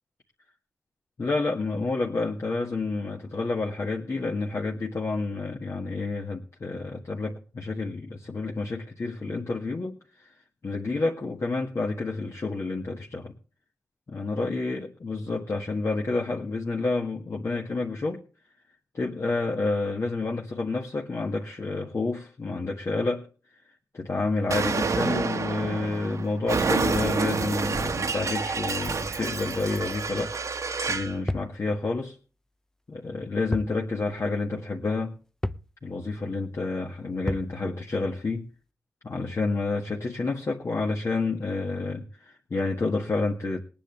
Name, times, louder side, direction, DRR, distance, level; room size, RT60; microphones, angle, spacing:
voice 1, 1.2-10.3 10.6-13.3 14.1-18.2 18.9-23.3 23.9-30.4 30.9-32.2 32.9-35.2 35.8-38.4 39.0-43.6, left 3 dB, 50° left, 1.7 m, -29 dB
Explosion, 24.5-31.2, right 4 dB, 65° right, 1.3 m, -28 dB
sound 1, 31.3-31.6 33.5-33.8 34.1-34.2 35.4-35.7 37.3-37.6, left 1 dB, 10° left, 0.6 m, -30 dB
20.0 x 9.8 x 3.3 m
wide cardioid pair, 100°, 6 cm